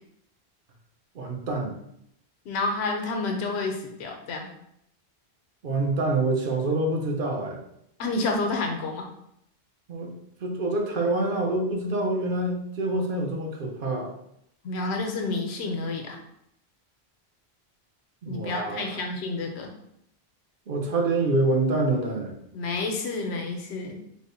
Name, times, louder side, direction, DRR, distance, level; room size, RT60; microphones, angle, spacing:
voice 1, 1.2-1.8 5.6-7.6 9.9-10.2 10.4-14.1 18.2-18.9 20.7-22.3, right 2 dB, 60° right, 0 dB, 0.8 m, -26 dB
voice 2, 2.4-4.5 8.0-9.1 14.6-16.2 18.3-19.7 22.5-24.0, left 3 dB, 85° left, 2 dB, 0.9 m, -29 dB
3.5 x 2.1 x 3.8 m, 0.76 s
omnidirectional pair, 1.1 m